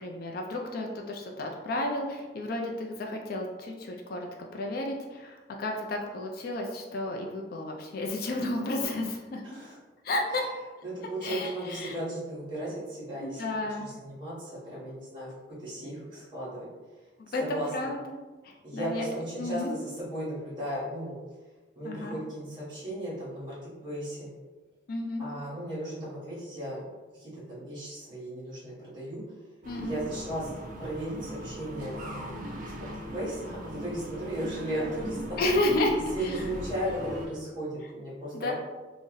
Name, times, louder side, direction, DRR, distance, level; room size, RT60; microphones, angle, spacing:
voice 1, 0.0-4.3 4.5-9.4 10.0-10.5 11.2-11.9 13.2-13.9 17.2-18.2 18.4-19.1 19.4-19.7 21.8-22.2 24.9-25.2 29.7-30.0 34.8-34.9 35.4-35.9 36.2-36.4 38.3-38.5, left 1 dB, 50° left, 1 dB, 0.3 m, -32 dB
voice 2, 10.8-13.4 13.8-16.7 17.3-17.9 18.6-21.2 21.7-24.3 25.2-26.8 27.1-29.2 29.8-32.4 32.8-35.5 36.1-38.5, right 1 dB, 25° right, -8 dB, 1.2 m, -36 dB
sound 1, 29.6-37.3, equal, 45° right, 0.4 m, -39 dB
2.6 x 2.0 x 3.8 m, 1.2 s
head